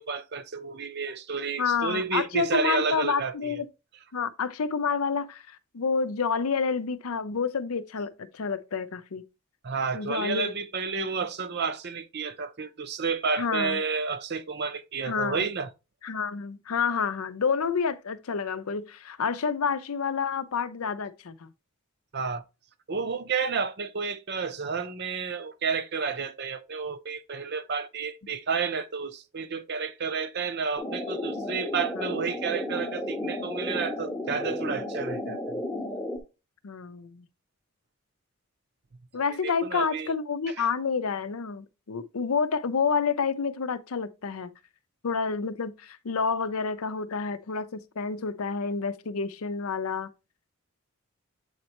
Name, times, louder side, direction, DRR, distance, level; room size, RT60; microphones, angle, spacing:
voice 1, 0.0-3.6 9.6-15.7 22.1-22.4 22.9-35.6 39.4-40.1 40.5-40.7, right 5 dB, 50° right, 0.6 m, -31 dB
voice 2, 1.6-3.7 4.1-9.2 9.9-10.5 10.9-11.1 13.3-13.8 15.1-15.5 16.0-21.5 32.0-32.1 36.6-37.3 39.1-44.5 45.0-50.1, left 5 dB, 80° left, 0.6 m, -29 dB
sound 1, 30.8-36.2, left 1 dB, 10° left, 0.8 m, -33 dB
8.0 x 4.3 x 2.9 m
head